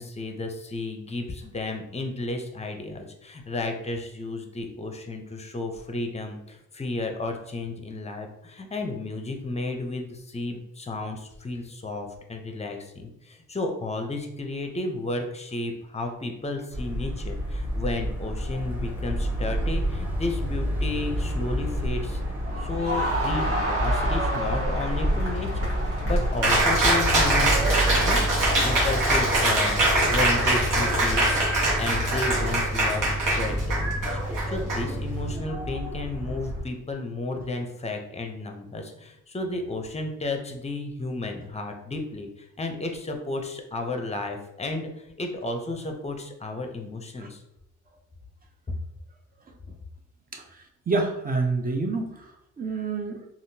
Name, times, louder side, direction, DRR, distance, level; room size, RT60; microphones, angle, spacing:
voice 1, 0.0-22.2 22.6-47.4, left 2 dB, 20° left, 4 dB, 0.6 m, -33 dB
sound 1, 16.7-36.6, equal, 5° right, 1.0 m, -29 dB
sound 2, 20.8-30.2, right 1 dB, 45° right, 1.3 m, -32 dB
Cheering, 26.4-35.4, right 1 dB, 75° right, 1.1 m, -23 dB
voice 2, 50.3-53.3, right 3 dB, 30° right, 2 dB, 0.6 m, -29 dB
3.4 x 2.4 x 2.7 m, 0.80 s
cardioid pair, 80°, 32 cm